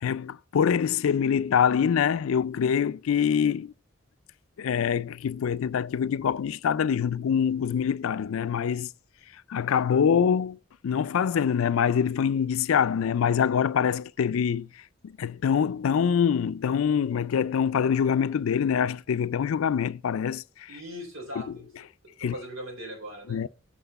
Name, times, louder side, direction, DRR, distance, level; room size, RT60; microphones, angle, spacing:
voice 1, 0.0-3.7 4.6-8.9 9.5-10.6 10.8-14.7 15.0-20.8 22.2-22.3 23.3-23.5, left 7 dB, 85° left, 0.4 m, -25 dB
voice 2, 20.7-21.6 22.2-23.4, equal, 90° right, 3.8 m, -39 dB
8.0 x 6.2 x 4.1 m
head